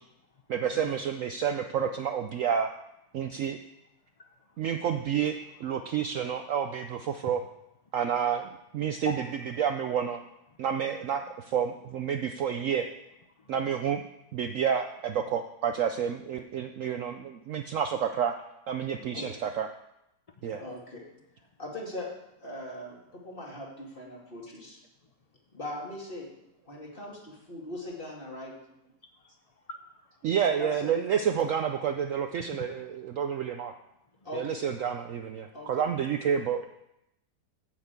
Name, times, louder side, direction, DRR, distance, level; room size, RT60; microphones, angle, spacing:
voice 1, 0.5-2.7 3.1-3.6 4.6-7.4 7.9-9.1 9.6-10.2 10.6-12.9 13.5-14.0 14.3-18.4 18.7-19.7 20.4-20.6 30.2-33.7 34.3-36.7, right 8 dB, 65° right, 7 dB, 0.8 m, -29 dB
voice 2, 4.2-4.6 5.8-5.9 8.9-9.3 13.4-13.5 29.1-29.9 32.5-32.7, left 3 dB, 60° left, 5 dB, 0.3 m, -42 dB
voice 3, 20.6-21.0 21.6-22.1 22.4-24.8 25.5-26.3 26.7-28.5 30.5-31.0 34.2-34.6 35.5-35.9, left 1 dB, 30° left, -2 dB, 2.4 m, -40 dB
8.9 x 6.8 x 8.0 m, 0.85 s
omnidirectional pair, 1.8 m